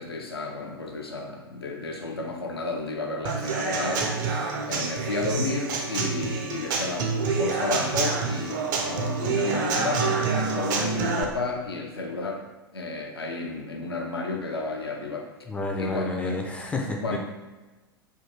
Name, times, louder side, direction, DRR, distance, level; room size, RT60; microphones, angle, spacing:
voice 1, 0.0-12.4 12.7-15.3 15.8-16.4 17.0-17.2, left 3 dB, 80° left, 1 dB, 0.5 m, -32 dB
Human voice / Acoustic guitar / Drum, 3.2-11.2, right 4 dB, 50° right, 0.5 m, -27 dB
voice 2, 15.5-17.2, left 2 dB, 10° left, 1 dB, 0.3 m, -30 dB
3.5 x 2.2 x 2.9 m, 1.2 s
figure-of-eight pair, 90°, 13 cm